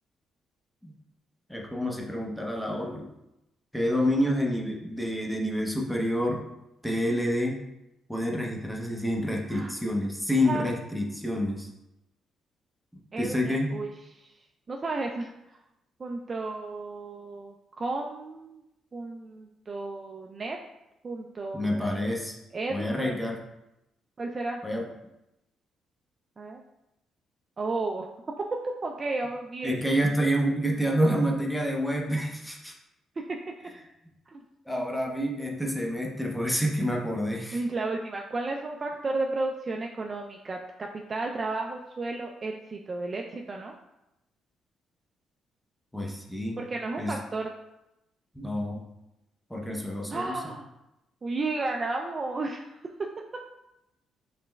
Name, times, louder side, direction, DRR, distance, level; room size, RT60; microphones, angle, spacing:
voice 1, 1.5-3.1 3.7-6.5 6.8-7.6 8.1-11.7 13.2-13.7 21.5-22.4 22.7-23.4 24.6-24.9 29.6-32.7 34.7-37.6 45.9-46.6 47.0-47.2 48.3-48.8 49.5-50.4, equal, 5° left, -1 dB, 0.6 m, -28 dB
voice 2, 13.1-14.4 14.7-15.6 16.0-18.6 18.9-20.6 21.0-21.9 22.5-23.2 24.2-24.6 26.4-26.6 27.6-28.1 28.5-29.8 33.2-33.4 34.3-34.4 37.5-43.7 46.6-47.5 50.1-50.7 51.2-52.9, right 3 dB, 35° right, 1 dB, 0.3 m, -33 dB
5.1 x 3.2 x 2.2 m, 0.90 s
cardioid pair, 90°, 0 cm